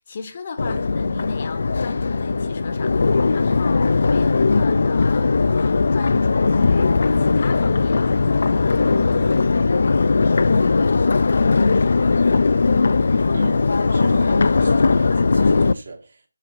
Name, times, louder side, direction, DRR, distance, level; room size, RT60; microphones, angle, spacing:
voice 1, 0.0-8.0, left 4 dB, 35° left, 0.8 m, -36 dB
Crowd, 0.6-15.7, left 4 dB, 55° left, 0.3 m, -18 dB
voice 2, 3.1-3.4 13.3-16.2, right 3 dB, 60° right, 2.0 m, -37 dB
6.4 x 3.8 x 4.8 m
figure-of-eight pair, 165°, 0 cm